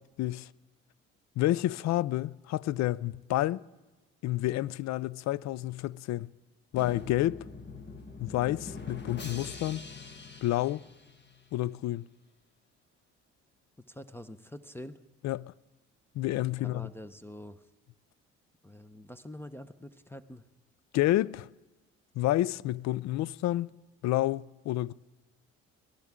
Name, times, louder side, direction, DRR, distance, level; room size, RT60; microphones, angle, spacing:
voice 1, 1.4-3.6 4.2-6.3 6.7-7.4 8.2-9.8 10.4-10.8 11.5-12.0 15.2-15.5 16.2-16.9 20.9-21.5 22.2-23.7 24.0-24.9, left 15 dB, 55° left, 0.5 m, -29 dB
Drum, 6.8-11.6, left 3 dB, 35° left, 1.8 m, -44 dB
voice 2, 13.8-15.0 16.6-17.6 18.6-20.4, left 1 dB, 5° left, 0.7 m, -45 dB
22.0 x 14.0 x 3.7 m
supercardioid pair, 65°, 32 cm